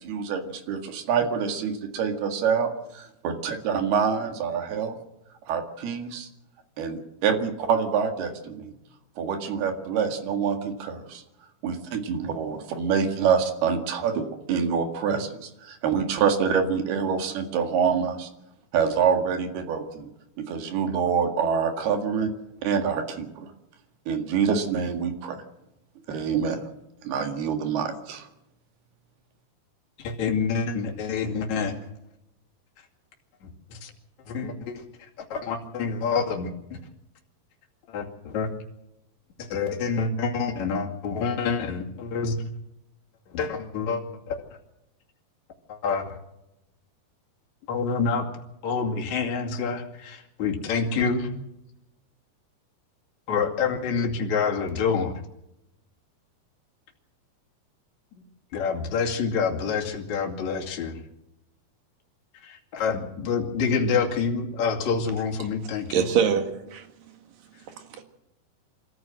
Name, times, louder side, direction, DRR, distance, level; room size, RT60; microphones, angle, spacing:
voice 1, 0.0-5.0 5.5-6.3 6.8-8.7 9.2-11.2 11.6-18.3 18.7-20.1 20.5-22.3 22.6-23.5 24.1-25.4 26.1-26.6 27.0-28.3, right 6 dB, 80° right, 6 dB, 4.0 m, -26 dB
voice 2, 30.0-31.7 33.7-33.9 34.3-34.8 35.3-36.8 37.9-38.5 39.4-42.3 43.3-44.0 44.3-44.4 45.7-46.2 47.7-48.3 48.6-51.3 53.3-55.1 58.5-61.0 62.4-66.1, left 5 dB, 50° left, 0 dB, 3.6 m, -27 dB
voice 3, 65.6-66.9 67.6-68.0, right 7 dB, 65° right, 6 dB, 3.5 m, -26 dB
25.5 x 14.0 x 7.7 m, 0.87 s
omnidirectional pair, 4.5 m